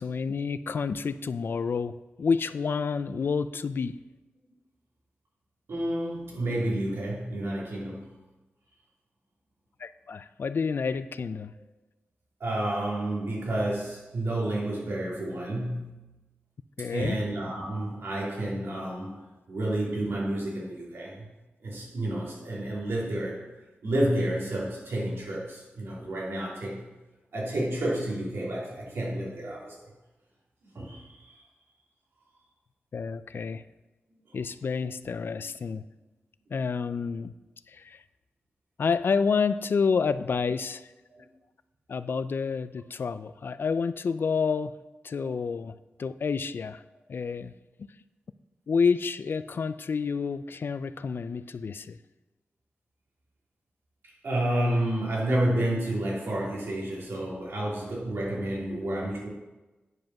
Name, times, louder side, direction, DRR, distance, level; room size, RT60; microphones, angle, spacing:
voice 1, 0.0-4.0 9.8-11.5 16.8-17.2 32.9-33.6 34.3-35.8 36.5-37.3 37.7-38.0 38.8-40.9 41.9-44.7 45.0-46.8 47.1-47.5 47.8-47.9 48.7-52.0, left 5 dB, 60° left, 14 dB, 0.4 m, -29 dB
voice 2, 5.7-8.1 11.5-11.6 12.4-16.1 16.9-21.3 21.6-23.5 23.8-26.8 27.3-29.7 30.6-31.4 41.1-41.2 45.2-45.3 54.2-59.3, right 1 dB, 75° right, -5 dB, 3.0 m, -30 dB
9.5 x 5.2 x 6.0 m, 1.1 s
wide cardioid pair, 110°, 4 cm